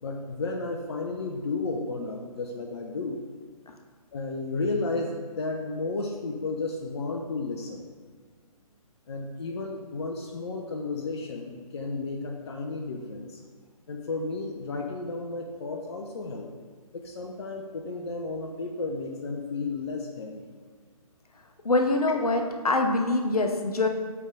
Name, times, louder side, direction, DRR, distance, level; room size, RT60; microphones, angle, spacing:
voice 1, 0.0-3.2 4.1-7.8 9.1-13.4 13.9-16.5 16.9-20.5, left 3 dB, 45° left, 2 dB, 0.5 m, -33 dB
voice 2, 21.6-23.9, left 2 dB, 70° left, 4 dB, 0.8 m, -24 dB
7.8 x 3.4 x 3.8 m, 1.5 s
figure-of-eight pair, 140°, 20 cm